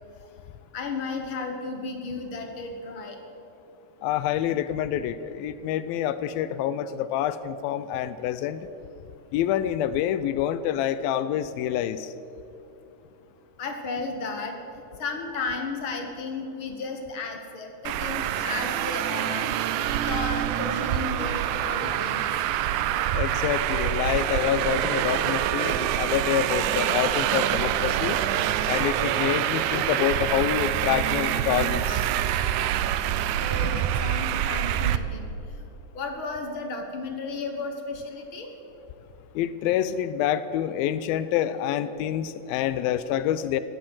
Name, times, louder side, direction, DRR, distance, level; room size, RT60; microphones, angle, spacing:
voice 1, 0.7-3.2 13.6-19.5 19.9-22.4 33.4-35.7 35.9-38.5, left 3 dB, 60° left, 4 dB, 1.4 m, -34 dB
voice 2, 4.0-8.6 9.3-12.1 23.1-28.2 28.7-32.1 33.6-33.9 39.4-43.6, left 10 dB, 85° left, 14 dB, 2.4 m, -27 dB
Traffic noise roadway noise, 17.9-35.0, right 11 dB, 90° right, 1.7 m, -26 dB
18.0 x 10.0 x 7.8 m, 2.9 s
omnidirectional pair, 4.3 m